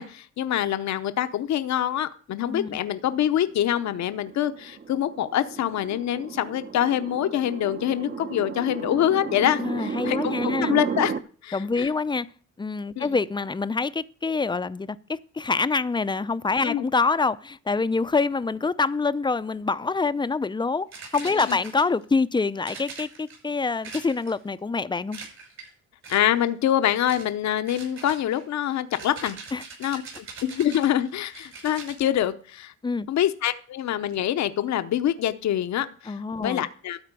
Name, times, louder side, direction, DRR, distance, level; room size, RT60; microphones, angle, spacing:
voice 1, 0.0-11.1 11.4-11.9 13.0-13.1 16.6-16.8 21.3-21.6 26.1-29.4 29.8-30.0 30.4-32.7 33.1-37.0, left 11 dB, 65° left, 0.8 m, -25 dB
sound 1, 3.2-11.2, right 5 dB, 35° right, 0.8 m, -33 dB
voice 2, 9.6-10.7 11.5-12.3 12.6-25.2 29.5-29.6 32.8-33.1 36.1-36.7, left 4 dB, 15° left, 0.5 m, -26 dB
sound 2, 20.9-22.1 22.6-23.4 23.8-24.5 25.1-25.7 26.0-26.5 27.1-27.3 27.7-32.0, right 4 dB, 65° right, 6.1 m, -42 dB
12.5 x 4.4 x 8.2 m
cardioid pair, 90°, 30 cm